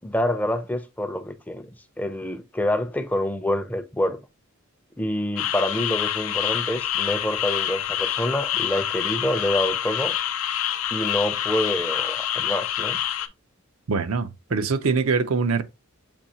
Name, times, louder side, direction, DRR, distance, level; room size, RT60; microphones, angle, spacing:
voice 1, 0.0-1.7 2.0-4.2 5.0-10.2 10.9-13.0, left 1 dB, 10° left, 0.4 m, -27 dB
sound 1, 5.4-13.3, left 10 dB, 85° left, 0.5 m, -27 dB
voice 2, 13.9-15.6, right 4 dB, 85° right, 0.6 m, -23 dB
6.9 x 2.7 x 2.8 m
head